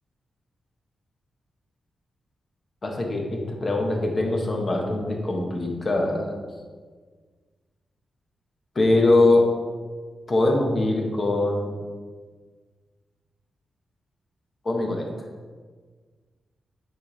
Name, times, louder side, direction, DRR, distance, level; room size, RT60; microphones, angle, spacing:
voice 1, 2.8-6.4 8.7-9.5 10.3-11.7 14.6-15.1, left 2 dB, 35° left, 1 dB, 1.4 m, -22 dB
9.3 x 5.1 x 4.2 m, 1.5 s
wide cardioid pair, 135°, 0 cm